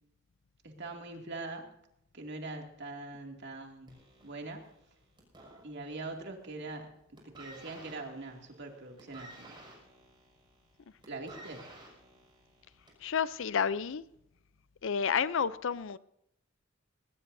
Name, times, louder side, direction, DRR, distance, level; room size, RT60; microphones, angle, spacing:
voice 1, 0.6-1.7 2.1-4.6 5.6-6.9 7.2-9.5 11.1-11.7, right 2 dB, 60° right, 2.5 m, -42 dB
sound 1, 3.9-6.2 6.5-6.9 7.2-13.1 13.9-14.0, right 2 dB, 25° right, 6.0 m, -53 dB
voice 2, 13.0-14.0 14.8-16.0, left 7 dB, 70° left, 0.5 m, -30 dB
20.5 x 19.5 x 2.7 m
head